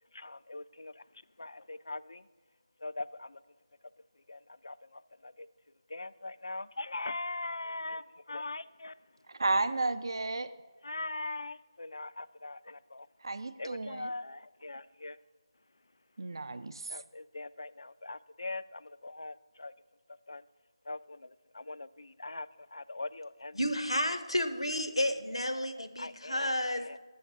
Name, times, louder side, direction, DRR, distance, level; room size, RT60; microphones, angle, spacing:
voice 1, 0.1-1.0 1.4-2.3 2.8-3.4 4.3-5.5 5.9-8.9 10.8-13.1 13.6-15.2 16.9-19.7 20.3-20.4 20.9-23.6 24.1-24.2 25.6-27.0, left 2 dB, 65° left, 16 dB, 0.3 m, -41 dB
voice 2, 9.3-10.5 13.2-14.1 16.2-17.0, right 3 dB, 55° right, 12 dB, 0.5 m, -32 dB
voice 3, 23.5-26.8, left 1 dB, 85° left, 9 dB, 0.9 m, -31 dB
7.0 x 4.4 x 6.5 m, 1.3 s
figure-of-eight pair, 160°, 3 cm